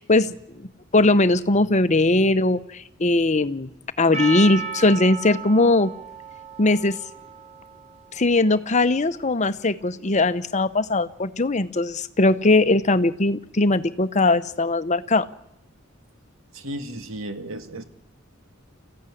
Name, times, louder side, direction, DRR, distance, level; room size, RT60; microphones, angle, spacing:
voice 1, 0.0-3.7 4.0-5.9 6.6-7.0 8.1-15.3, left 2 dB, 35° left, 12 dB, 0.9 m, -20 dB
Percussion, 4.1-8.7, right 5 dB, 30° right, 3.3 m, -35 dB
voice 2, 16.5-17.8, right 1 dB, 70° right, 9 dB, 2.0 m, -34 dB
27.5 x 15.0 x 9.9 m, 0.87 s
head